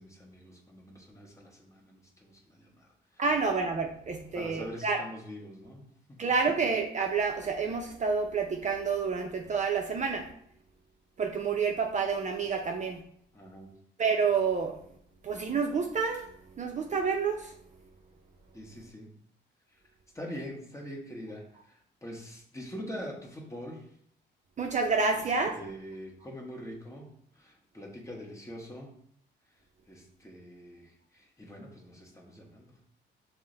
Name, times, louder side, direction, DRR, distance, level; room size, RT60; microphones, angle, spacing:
voice 1, 0.0-2.9 3.1-3.2 4.3-6.2 13.3-13.7 18.5-19.1 20.1-23.9 25.1-27.1 27.3-28.9 29.9-32.8, equal, 15° left, 0 dB, 1.1 m, -44 dB
voice 2, 3.2-5.0 6.2-10.2 11.2-13.0 14.0-14.7 15.2-16.2 16.6-17.5 24.6-25.5, right 5 dB, 40° right, 3 dB, 0.6 m, -29 dB
5.5 x 2.2 x 3.8 m, 0.65 s
cardioid pair, 90°, 20 cm